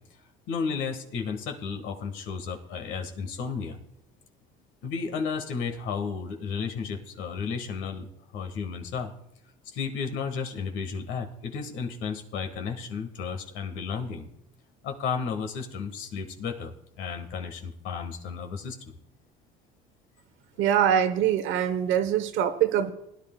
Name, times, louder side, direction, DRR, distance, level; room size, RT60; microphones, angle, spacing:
voice 1, 0.5-3.8 4.8-8.1 8.3-9.1 9.6-14.3 14.8-18.9, left 5 dB, 65° left, 5 dB, 1.5 m, -33 dB
voice 2, 20.6-22.9, right 9 dB, 65° right, 10 dB, 0.9 m, -23 dB
20.5 x 10.5 x 2.2 m, 0.80 s
supercardioid pair, 85°, 21 cm